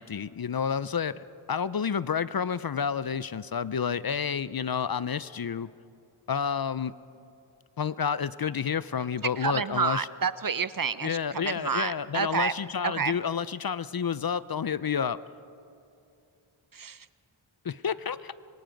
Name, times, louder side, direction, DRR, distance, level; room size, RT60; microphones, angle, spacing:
voice 1, 0.0-5.7 6.3-6.9 7.8-10.1 11.0-15.2 17.6-18.3, left 7 dB, 45° left, 17 dB, 0.6 m, -30 dB
voice 2, 9.4-12.5 12.8-13.2 16.7-17.1, right 6 dB, 45° right, 16 dB, 0.7 m, -29 dB
26.0 x 23.0 x 5.2 m, 2.6 s
cardioid pair, 45°, 50 cm